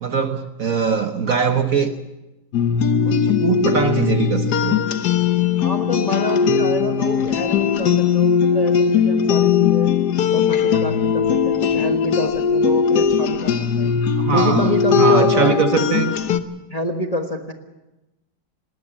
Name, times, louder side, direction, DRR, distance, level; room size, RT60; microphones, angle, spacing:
voice 1, 0.0-1.9 3.0-4.8 14.2-16.2, right 6 dB, 50° right, 7 dB, 1.3 m, -21 dB
sound 1, 2.5-16.4, left 7 dB, 60° left, 1.4 m, -19 dB
voice 2, 5.6-9.9 10.3-13.9 14.3-15.6 16.7-17.5, left 1 dB, 25° left, 4 dB, 1.2 m, -27 dB
19.5 x 19.0 x 7.4 m, 1.0 s
omnidirectional pair, 2.1 m